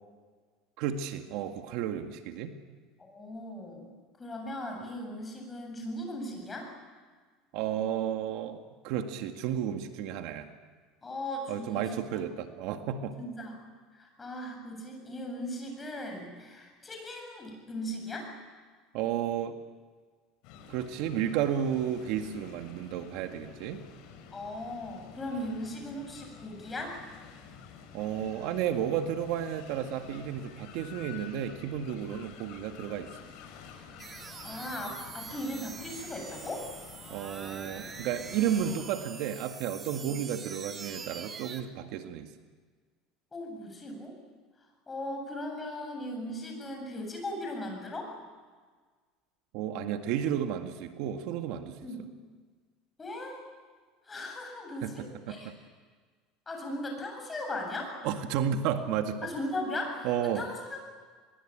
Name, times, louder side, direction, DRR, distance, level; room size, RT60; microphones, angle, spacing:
voice 1, 0.8-2.6 7.5-8.6 8.8-10.5 11.5-13.1 18.9-19.6 20.7-23.8 27.9-33.1 37.1-42.3 49.5-51.7 54.8-55.5 58.0-59.3 60.0-60.5, right 9 dB, 65° right, 6 dB, 1.9 m, -32 dB
voice 2, 3.0-6.7 11.0-11.9 13.2-13.6 13.9-18.3 24.3-27.0 34.4-36.7 40.0-40.2 43.3-44.1 44.9-48.1 51.8-52.0 53.0-53.4 54.1-55.5 56.5-58.0 59.2-60.8, left 1 dB, 20° left, 2 dB, 7.9 m, -38 dB
sound 1, 20.4-38.8, left 7 dB, 65° left, 5.9 m, -50 dB
sound 2, 34.0-41.6, right 5 dB, 25° right, 1.9 m, -44 dB
23.5 x 22.5 x 9.0 m, 1.5 s
supercardioid pair, 135°, 0 cm